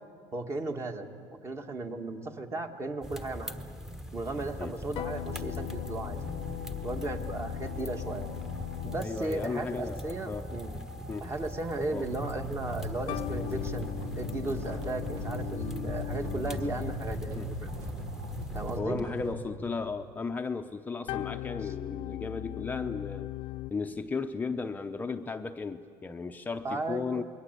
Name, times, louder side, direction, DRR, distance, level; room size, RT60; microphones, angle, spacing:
voice 1, 0.3-1.1 1.4-3.6 4.1-6.2 6.8-8.3 8.8-10.8 11.2-13.9 14.2-17.7 18.5-19.0 26.6-27.2, right 2 dB, 30° right, 5 dB, 2.1 m, -35 dB
Drakensberge wood fired oven, 3.0-18.8, equal, 5° right, 1.2 m, -41 dB
sound 1, 4.9-9.6 13.1-17.4 21.1-23.7, left 14 dB, 60° left, 0.7 m, -38 dB
sound 2, 4.9-19.3, equal, 80° right, 3.0 m, -42 dB
voice 2, 9.0-10.5 11.1-11.3 11.9-12.1 17.4-17.5 18.7-23.3 23.7-27.2, left 4 dB, 15° left, 6 dB, 0.7 m, -35 dB
27.5 x 21.5 x 8.3 m, 2.2 s
supercardioid pair, 115°, 10 cm